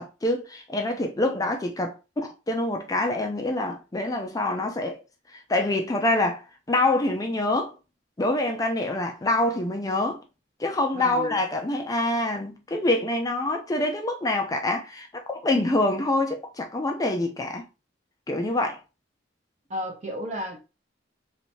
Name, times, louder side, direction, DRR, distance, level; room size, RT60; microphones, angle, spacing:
voice 1, 0.0-5.0 5.5-6.4 6.7-7.7 8.2-10.2 10.6-17.6 18.3-18.8, left 2 dB, 20° left, 0.4 m, -26 dB
voice 2, 10.9-11.4 19.7-20.6, equal, 40° right, 0.8 m, -33 dB
3.2 x 2.7 x 2.9 m
head